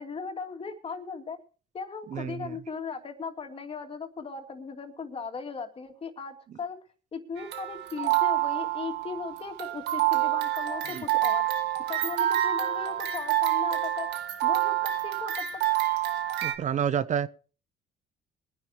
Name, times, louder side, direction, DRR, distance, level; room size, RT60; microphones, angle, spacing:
voice 1, 0.0-1.4 1.7-6.8 7.1-11.5 11.9-14.1 14.4-15.6, left 5 dB, 35° left, 5 dB, 2.7 m, -37 dB
voice 2, 2.1-2.6 10.9-11.0 16.4-17.3, right 8 dB, 45° right, 15 dB, 0.7 m, -29 dB
sound 1, 7.4-16.6, right 14 dB, 85° right, 1.7 m, -27 dB
22.5 x 10.0 x 3.1 m, 0.38 s
cardioid pair, 110°, 17 cm